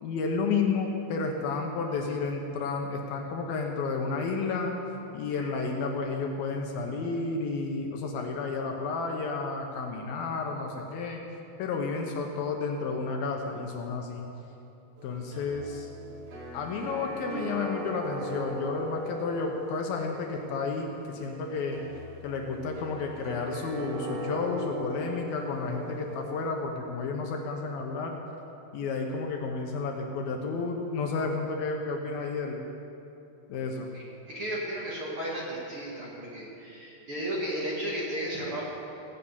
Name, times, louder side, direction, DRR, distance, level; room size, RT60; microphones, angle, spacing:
voice 1, 0.0-4.7 5.1-11.2 11.6-14.3 15.0-15.9 16.5-21.8 22.2-28.2 28.7-32.6 33.5-33.9, left 4 dB, 70° left, 2 dB, 2.7 m, -31 dB
sound 1, 15.0-26.5, equal, 85° right, 3.9 m, -39 dB
voice 2, 33.9-38.6, right 1 dB, 40° right, -5 dB, 2.6 m, -34 dB
18.5 x 6.7 x 8.5 m, 2.8 s
omnidirectional pair, 4.7 m